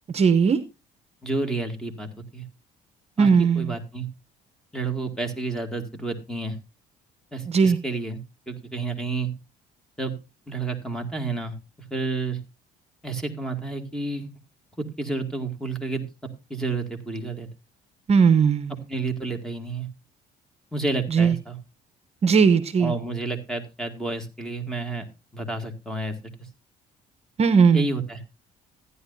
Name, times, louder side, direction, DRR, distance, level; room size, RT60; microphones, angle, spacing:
voice 1, 0.1-0.6 3.2-3.7 7.5-7.8 18.1-18.7 21.1-21.3 22.2-22.9 27.4-27.8, right 6 dB, 40° right, 11 dB, 0.8 m, -18 dB
voice 2, 1.2-2.4 3.2-4.1 4.7-6.6 7.3-8.2 8.5-9.3 10.0-10.1 10.5-11.6 11.9-12.4 13.0-14.3 14.8-16.0 16.5-17.5 18.7-19.9 20.7-21.6 22.8-25.1 25.3-26.1 27.7-28.2, right 3 dB, 5° left, 6 dB, 2.0 m, -30 dB
14.5 x 9.9 x 2.7 m, 0.27 s
cardioid pair, 110°, 17 cm